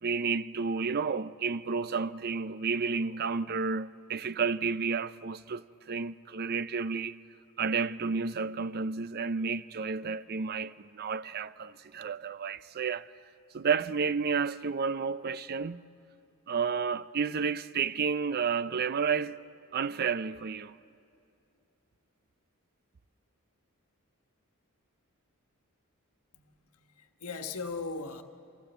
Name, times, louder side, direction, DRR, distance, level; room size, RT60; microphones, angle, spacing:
voice 1, 0.0-7.2 7.6-13.1 13.5-15.8 16.5-19.4 19.7-20.7, right 5 dB, 45° right, 0.5 m, -31 dB
voice 2, 26.3-28.2, left 4 dB, 80° left, 1.3 m, -39 dB
27.0 x 16.0 x 8.0 m
head